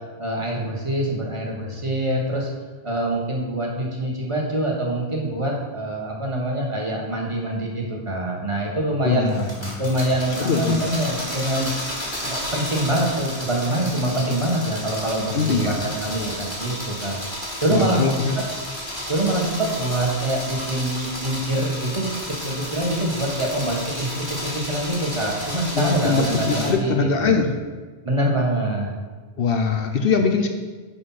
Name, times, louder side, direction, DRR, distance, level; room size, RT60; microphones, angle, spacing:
voice 1, 0.2-2.5 2.8-9.3 9.8-11.7 12.2-17.2 17.6-18.0 18.4-18.5 19.1-22.1 22.4-26.9 27.2-27.4 28.0-28.9, right 1 dB, 30° right, -2 dB, 1.6 m, -25 dB
voice 2, 9.0-9.8 10.4-10.8 15.3-15.9 17.7-18.4 25.7-27.6 29.4-30.5, left 4 dB, 65° left, 5 dB, 0.9 m, -22 dB
sound 1, 9.3-26.7, equal, 25° left, 2.7 m, -32 dB
10.0 x 4.2 x 5.7 m, 1.4 s
omnidirectional pair, 1.1 m